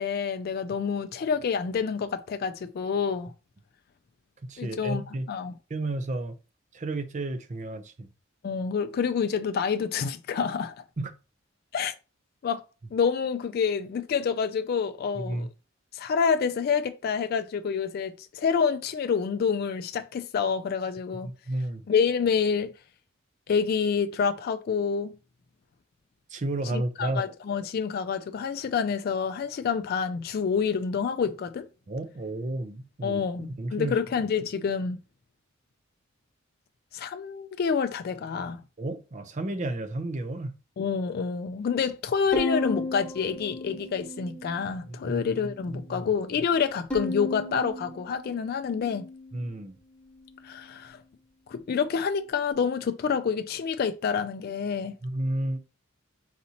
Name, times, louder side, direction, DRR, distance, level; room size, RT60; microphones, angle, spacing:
voice 1, 0.0-3.3 4.6-5.0 5.3-5.5 8.4-10.7 11.7-11.9 12.4-12.6 12.9-15.5 15.9-21.3 21.9-22.7 23.5-25.1 26.7-31.7 33.0-35.0 36.9-38.6 40.8-49.1 50.4-51.0 51.5-54.9, left 6 dB, 50° left, 0.3 m, -28 dB
voice 2, 4.5-5.3 5.7-6.3 6.7-8.1 11.0-11.1 15.1-15.5 21.2-21.8 26.3-27.2 31.9-33.2 33.6-34.0 38.8-40.5 44.9-46.1 49.3-49.8 55.0-55.6, right 2 dB, 40° right, 0.6 m, -32 dB
Bowed string instrument, 42.3-44.7 45.1-45.9 46.9-49.4, left 2 dB, 5° left, 1.3 m, -35 dB
4.1 x 4.0 x 2.8 m
head